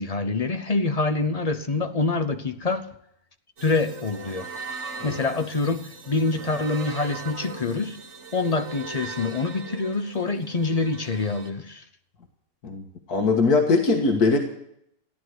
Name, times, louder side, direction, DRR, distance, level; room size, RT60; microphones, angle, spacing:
voice 1, 0.0-2.9 3.6-4.5 5.0-8.0 8.3-11.8, left 3 dB, 35° left, 0.7 m, -26 dB
sound 1, 3.6-11.5, right 3 dB, 50° right, 1.9 m, -39 dB
voice 2, 12.6-14.4, left 3 dB, 85° left, 2.1 m, -21 dB
15.0 x 11.5 x 8.0 m
omnidirectional pair, 1.6 m